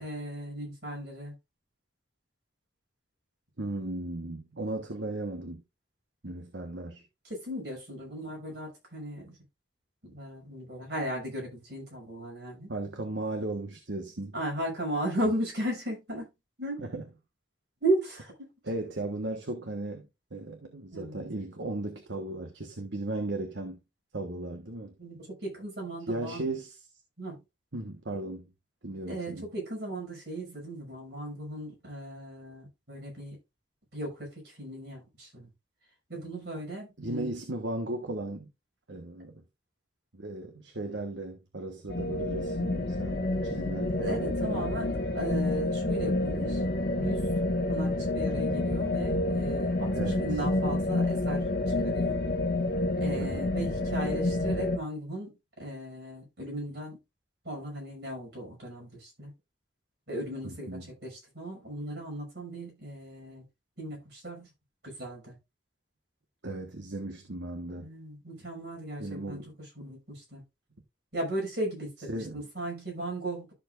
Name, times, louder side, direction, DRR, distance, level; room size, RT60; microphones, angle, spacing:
voice 1, 0.0-1.3 7.2-9.4 10.0-12.7 14.3-16.3 16.6-16.8 17.8-18.5 20.9-21.2 25.0-26.4 27.2-27.4 29.1-33.4 33.9-35.5 36.1-37.3 44.0-46.6 47.0-47.3 47.7-51.4 51.8-52.2 53.0-57.0 57.4-59.3 60.1-63.4 63.8-64.5 64.8-65.4 67.8-70.4 71.1-73.5, right 1 dB, 60° right, 5.9 m, -36 dB
voice 2, 3.6-5.6 6.2-7.0 12.7-14.3 16.8-17.1 18.6-23.8 24.1-25.0 26.1-26.9 27.7-28.5 28.8-29.5 37.0-38.5 38.9-39.4 40.1-44.7 49.9-50.4 53.2-53.6 60.4-60.9 66.4-67.9 69.0-69.5 72.1-72.5, right 2 dB, 75° right, 1.3 m, -36 dB
sound 1, 41.9-54.8, left 2 dB, 50° left, 1.5 m, -29 dB
13.0 x 6.9 x 2.5 m
head